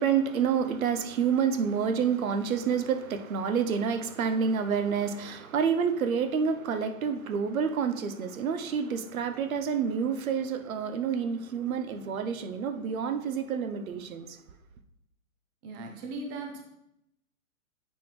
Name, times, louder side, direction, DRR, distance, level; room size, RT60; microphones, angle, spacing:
voice 1, 0.0-14.3, right 6 dB, 70° right, 0.8 m, -28 dB
voice 2, 15.6-16.6, right 2 dB, 15° right, 0.4 m, -38 dB
9.2 x 4.4 x 3.3 m
hypercardioid pair, 135°, 43 cm